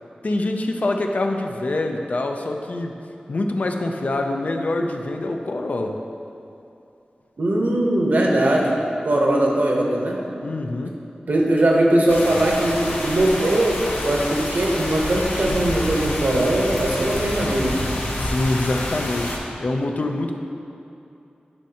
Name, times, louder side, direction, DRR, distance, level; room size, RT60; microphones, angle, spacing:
voice 1, 0.2-3.0 3.3-6.0 10.4-11.0 18.2-20.4, left 2 dB, 55° left, 4 dB, 0.4 m, -25 dB
voice 2, 7.4-8.7 9.0-10.1 11.3-17.8, right 1 dB, 65° right, -1 dB, 0.9 m, -20 dB
sound 1, 12.1-19.4, left 1 dB, 90° left, 0.8 m, -28 dB
9.7 x 4.2 x 2.8 m, 2.7 s
wide cardioid pair, 90°, 3 cm